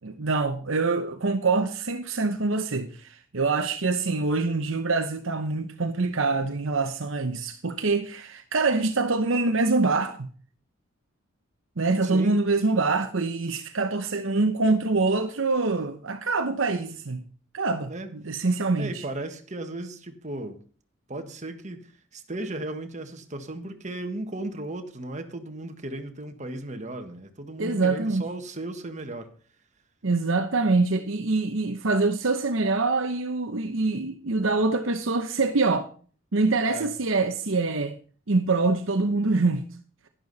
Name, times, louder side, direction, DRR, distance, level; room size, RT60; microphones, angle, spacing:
voice 1, 0.0-10.3 11.8-17.2 17.5-19.0 27.6-28.2 30.0-35.9 36.3-38.0 38.3-39.7, right 3 dB, 65° right, 0.9 m, -25 dB
voice 2, 12.0-12.4 17.9-18.1 18.8-20.6 21.1-29.3 36.7-36.9, right 2 dB, 35° right, 1.6 m, -35 dB
11.5 x 11.5 x 4.1 m
head